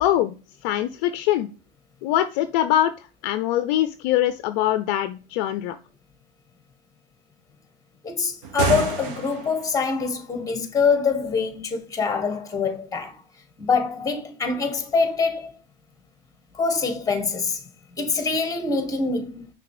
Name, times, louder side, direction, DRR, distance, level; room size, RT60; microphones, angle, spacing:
voice 1, 0.0-0.3 0.6-1.5 2.0-2.9 3.2-5.8, left 12 dB, 50° left, 0.5 m, -23 dB
voice 2, 8.0-13.2 13.6-15.5 16.5-17.6 17.9-19.5, left 5 dB, 10° left, 1.5 m, -24 dB
sound 1, 8.4-9.7, right 5 dB, 60° right, 1.4 m, -27 dB
5.8 x 3.4 x 4.9 m
hypercardioid pair, 110°, 31 cm